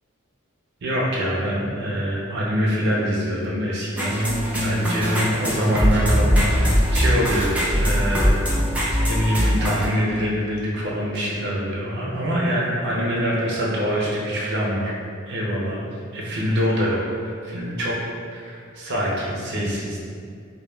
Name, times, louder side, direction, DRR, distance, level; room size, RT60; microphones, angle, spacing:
voice 1, 0.8-4.2 4.6-8.3 9.1-14.9 15.3-15.8 16.1-17.9 18.3-20.1, equal, 55° right, -4 dB, 0.5 m, -24 dB
sound 1, 4.0-9.9, equal, 5° right, 0.3 m, -21 dB
2.2 x 2.1 x 3.2 m, 2.2 s
head